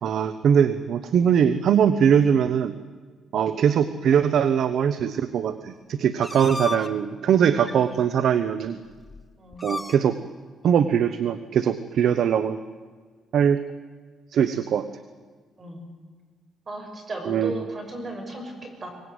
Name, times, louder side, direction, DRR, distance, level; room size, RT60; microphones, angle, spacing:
voice 1, 0.0-2.8 3.3-8.8 9.6-10.2 10.6-12.6 13.3-13.6 14.3-14.9 17.3-17.6, right 8 dB, 60° right, 11 dB, 1.1 m, -21 dB
sound 1, 6.2-6.9 7.6-7.8 8.6-8.7 8.9-9.2 9.5-10.0, left 2 dB, 10° left, 1.1 m, -32 dB
voice 2, 16.7-18.9, right 2 dB, 30° right, 3 dB, 6.4 m, -35 dB
24.0 x 19.0 x 9.6 m, 1.5 s
cardioid pair, 145°, 0 cm